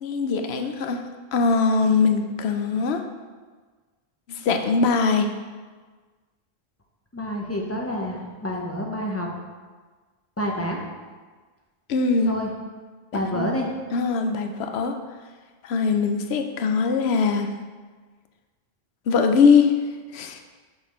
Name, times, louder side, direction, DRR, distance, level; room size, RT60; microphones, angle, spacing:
voice 1, 0.0-1.0 1.3-3.0 4.3-5.3 11.9-12.3 13.3-13.5 13.9-14.9 15.6-17.5 19.1-19.7 20.1-20.4, left 5 dB, 75° left, 6 dB, 0.8 m, -21 dB
voice 2, 7.1-9.3 10.4-10.9 12.2-12.5 13.1-13.7, equal, 15° left, -1 dB, 0.6 m, -28 dB
6.3 x 5.8 x 3.1 m, 1.4 s
omnidirectional pair, 1.1 m